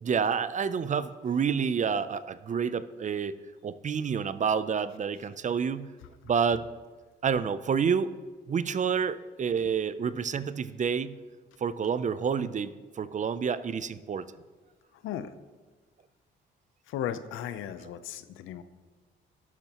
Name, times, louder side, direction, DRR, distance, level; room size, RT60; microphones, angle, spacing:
voice 1, 0.0-3.4 3.6-5.9 6.3-6.7 7.2-8.1 8.5-11.1 11.6-14.2 17.8-17.9, right 6 dB, 40° right, 14 dB, 0.6 m, -28 dB
voice 2, 16.9-18.6, left 10 dB, 90° left, 13 dB, 0.6 m, -35 dB
12.0 x 12.0 x 3.0 m, 1.3 s
cardioid pair, 90°, 20 cm